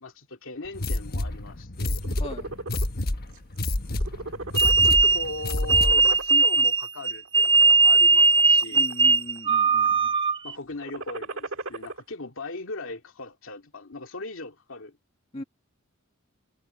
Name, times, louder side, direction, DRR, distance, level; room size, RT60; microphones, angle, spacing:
voice 1, 0.0-2.0 4.6-8.9 10.4-15.0, left 2 dB, 70° left, 2.4 m, -39 dB
sound 1, 0.7-6.2, left 1 dB, 50° left, 1.3 m, -29 dB
sound 2, 1.9-2.9 3.3-3.6 3.9-5.1 5.5-6.6 7.2-7.7 8.3-9.1 9.4-9.9 10.7-12.0, right 2 dB, 70° right, 1.7 m, -37 dB
voice 2, 2.2-2.5 8.7-10.1 15.3-15.4, left 1 dB, 30° left, 2.0 m, -39 dB
sound 3, 4.6-10.5, right 4 dB, 25° right, 0.5 m, -19 dB
head